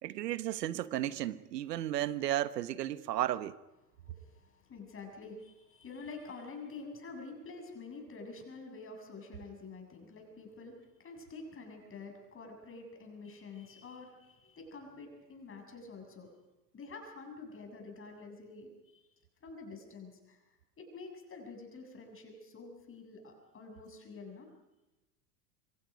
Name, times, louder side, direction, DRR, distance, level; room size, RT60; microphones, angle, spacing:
voice 1, 0.0-3.6, right 13 dB, 75° right, 1.4 m, -34 dB
voice 2, 4.2-16.3 16.7-19.0 19.4-20.4 20.8-24.5, left 3 dB, 25° left, 7.3 m, -48 dB
28.0 x 25.5 x 5.3 m
hypercardioid pair, 95°, 49 cm